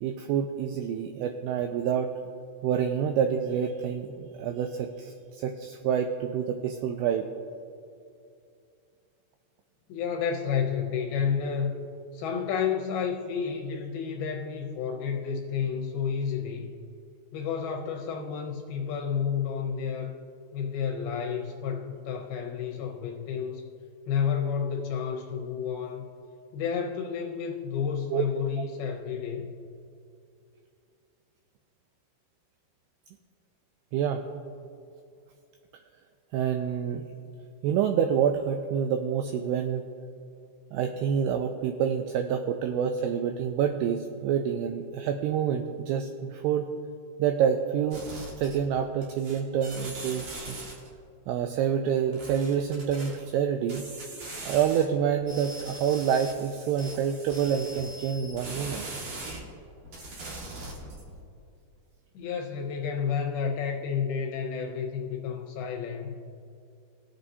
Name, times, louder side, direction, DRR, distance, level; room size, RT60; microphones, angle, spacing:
voice 1, 0.0-2.1 2.6-7.3 28.1-28.2 33.9-34.2 36.3-37.1 37.6-39.8 40.7-46.7 47.2-48.0 48.4-50.6 51.3-53.8 54.4-58.9, right 8 dB, 85° right, 6 dB, 2.3 m, -27 dB
voice 2, 9.9-11.8 12.1-16.7 17.3-20.2 20.5-23.6 24.1-26.1 26.5-29.5 62.1-66.2, left 7 dB, 75° left, 1 dB, 2.4 m, -30 dB
sound 1, 47.9-48.8 49.0-50.9 52.1-53.1 53.7-54.8 55.2-59.4 59.8-61.1, right 2 dB, 70° right, 1.4 m, -41 dB
20.0 x 7.7 x 2.7 m, 2.5 s
omnidirectional pair, 5.1 m